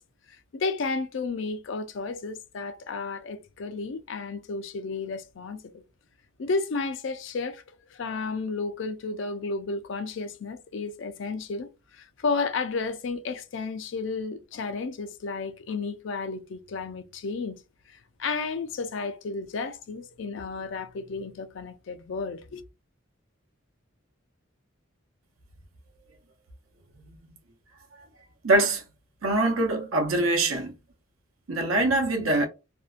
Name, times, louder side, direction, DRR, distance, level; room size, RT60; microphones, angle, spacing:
voice 1, 0.3-5.8 6.4-17.6 17.9-22.6, left 4 dB, 60° left, 0.4 m, -32 dB
voice 2, 28.4-28.8 29.2-30.7 31.5-32.5, right 2 dB, 85° right, 0.8 m, -23 dB
2.6 x 2.1 x 2.4 m
head